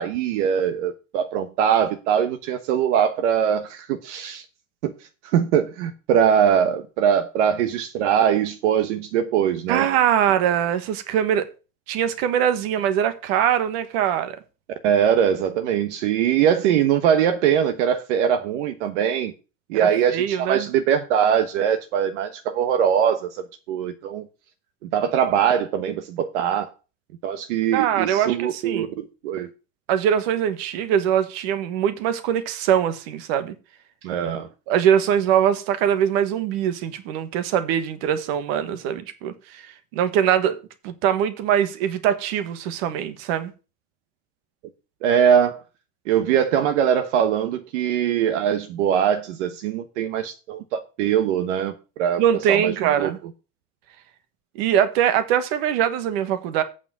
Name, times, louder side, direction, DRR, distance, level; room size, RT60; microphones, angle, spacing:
voice 1, 0.0-4.4 4.8-4.9 5.2-9.9 14.8-19.3 19.7-24.3 24.8-26.7 27.2-29.5 34.0-34.5 45.0-45.6 46.1-52.2 52.5-53.1, right 8 dB, 65° right, 1.2 m, -22 dB
voice 2, 9.7-11.5 11.9-14.4 19.8-20.7 27.7-28.9 29.9-33.5 34.7-39.6 39.9-40.6 40.8-43.5 52.2-53.2 54.5-56.6, right 9 dB, 50° right, 1.5 m, -22 dB
8.6 x 5.0 x 7.4 m
supercardioid pair, 180°, 38 cm